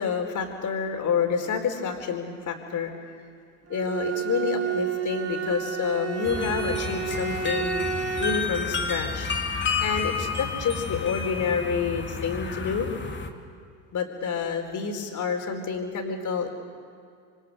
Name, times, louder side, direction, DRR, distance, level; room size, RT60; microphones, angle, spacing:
voice 1, 0.0-2.9 3.7-7.8 8.2-9.3 9.8-12.9 13.9-16.5, left 6 dB, 40° left, 4 dB, 4.4 m, -28 dB
Bowed string instrument, 3.7-8.6, right 7 dB, 35° right, 2.2 m, -30 dB
sound 1, 6.2-13.3, left 5 dB, 25° left, 2.6 m, -31 dB
27.5 x 25.5 x 6.8 m, 2.3 s
supercardioid pair, 100°, 44 cm